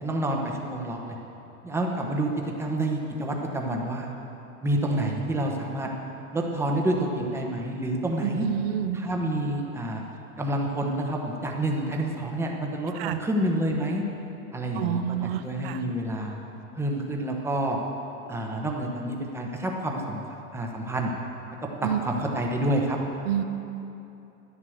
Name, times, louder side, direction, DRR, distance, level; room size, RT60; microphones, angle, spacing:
voice 1, 0.0-1.2 1.6-4.1 4.6-5.9 6.3-8.5 8.9-10.0 10.4-14.0 14.5-15.0 15.4-16.4 16.7-17.8 18.3-20.2 20.5-21.1 21.8-23.0, right 1 dB, 5° right, 0 dB, 1.0 m, -28 dB
voice 2, 8.2-9.0 12.9-13.2 14.7-15.8 21.8-22.0 23.3-23.4, right 10 dB, 40° right, 9 dB, 0.8 m, -28 dB
11.0 x 9.8 x 6.5 m, 2.8 s
supercardioid pair, 145°, 44 cm